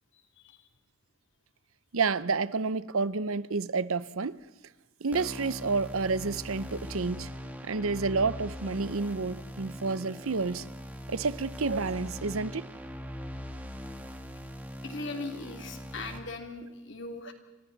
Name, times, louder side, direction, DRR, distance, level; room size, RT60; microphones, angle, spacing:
voice 1, 1.9-4.4 5.0-7.3 7.6-10.7 11.1-12.7, right 4 dB, 75° right, 0.7 m, -30 dB
sound 1, 5.1-16.2, equal, 10° right, 1.8 m, -41 dB
voice 2, 14.8-17.3, left 3 dB, 55° left, 2.9 m, -39 dB
29.0 x 26.0 x 4.1 m
head